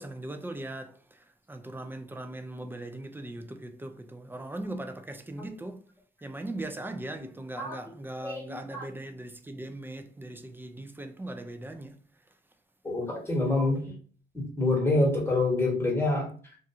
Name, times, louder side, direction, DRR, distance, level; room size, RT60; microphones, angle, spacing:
voice 1, 0.0-5.8 6.2-12.0, right 1 dB, 10° right, 0.3 m, -39 dB
voice 2, 8.2-8.9 12.8-13.9 14.3-16.3, left 2 dB, 10° left, 1.3 m, -27 dB
2.5 x 2.4 x 2.6 m
cardioid pair, 90°, 20 cm